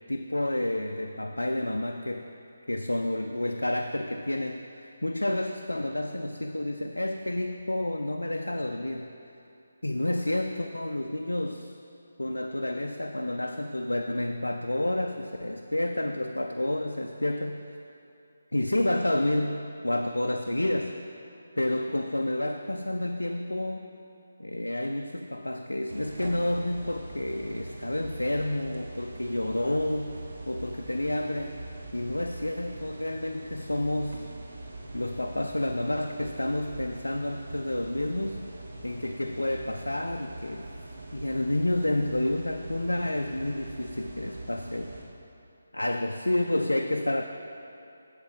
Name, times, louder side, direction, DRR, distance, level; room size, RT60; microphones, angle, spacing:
voice 1, 0.1-2.2 2.7-9.1 9.8-11.7 12.2-17.7 18.5-20.9 21.6-23.9 24.4-31.6 31.9-34.2 34.9-38.4 38.8-40.7 41.1-44.9 45.7-47.2, left 1 dB, 75° left, 4 dB, 0.4 m, -30 dB
sound 1, 25.9-45.0, right 2 dB, 50° right, 1.0 m, -43 dB
8.2 x 7.2 x 3.7 m, 2.7 s
figure-of-eight pair, 150°, 0 cm